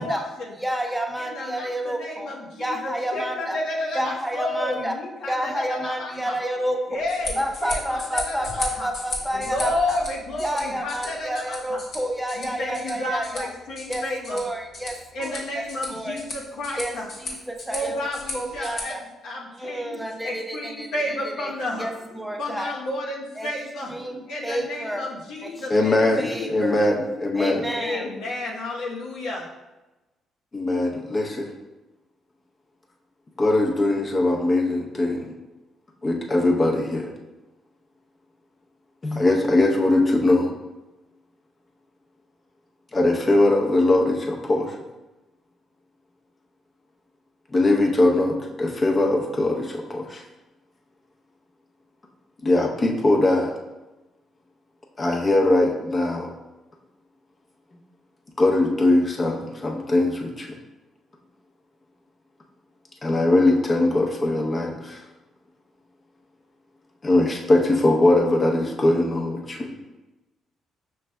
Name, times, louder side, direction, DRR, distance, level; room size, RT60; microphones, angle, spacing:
voice 1, 0.0-0.5 1.2-6.3 6.9-8.9 9.3-11.8 12.4-14.4 15.1-17.1 17.7-19.0 19.2-23.9 24.3-26.7 27.7-29.4, left 1 dB, 85° left, -4 dB, 0.9 m, -31 dB
voice 2, 0.6-3.6 3.9-5.0 5.3-7.0 7.4-10.0 10.4-13.5 13.9-15.6 15.9-16.2 16.8-19.0 19.5-22.7 23.4-23.5 23.9-25.1 25.4-26.8 27.2-28.1, equal, 5° right, 2 dB, 0.5 m, -30 dB
sound 1, 6.9-18.8, left 2 dB, 70° left, 1.3 m, -36 dB
voice 3, 25.7-27.6 30.5-31.5 33.4-35.3 36.0-37.1 39.0-40.5 42.9-44.7 47.5-50.2 52.4-53.5 55.0-56.3 58.4-60.6 63.0-65.0 67.0-69.7, left 2 dB, 30° left, 0 dB, 0.7 m, -21 dB
6.0 x 3.2 x 2.2 m, 1.1 s
cardioid pair, 90°, 0 cm